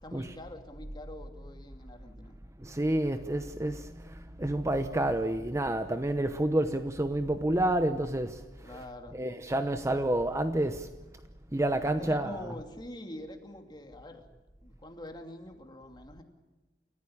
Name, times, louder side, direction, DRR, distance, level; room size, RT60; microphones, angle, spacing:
voice 1, 0.0-2.4 8.6-9.2 11.8-14.3 14.6-16.2, left 1 dB, 25° left, 2.6 m, -45 dB
voice 2, 2.6-8.8 9.1-10.9 11.5-12.5, right 1 dB, 15° right, 0.9 m, -29 dB
28.5 x 14.5 x 8.7 m
head